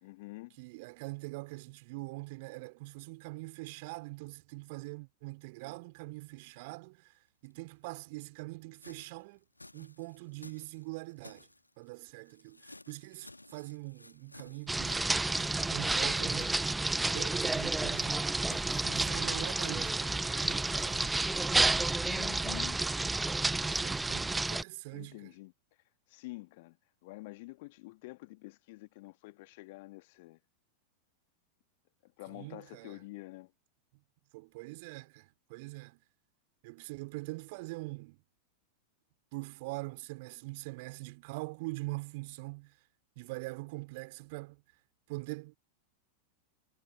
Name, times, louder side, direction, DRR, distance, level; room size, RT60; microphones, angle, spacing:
voice 1, 0.0-0.6 22.0-22.8 24.9-25.5 26.1-26.8 27.0-30.4 32.0-33.5, left 22 dB, 50° left, 1.4 m, -47 dB
voice 2, 0.6-7.0 7.4-9.4 9.7-11.5 11.8-15.1 15.6-18.3 18.6-21.1 23.6-25.2 32.3-32.9 34.3-36.0 36.6-38.2 39.3-42.7 43.2-44.6 45.1-45.6, right 25 dB, 50° right, 3.4 m, -43 dB
sound 1, 7.5-7.6 7.9-8.0 8.7-11.8 12.3-16.0 16.4-17.1 17.4-17.7 17.9-19.5 19.8-19.9 20.1-21.2, left 2 dB, 85° left, 1.7 m, -55 dB
sound 2, 14.7-24.6, right 2 dB, 10° right, 0.5 m, -30 dB
figure-of-eight pair, 90°, 0 cm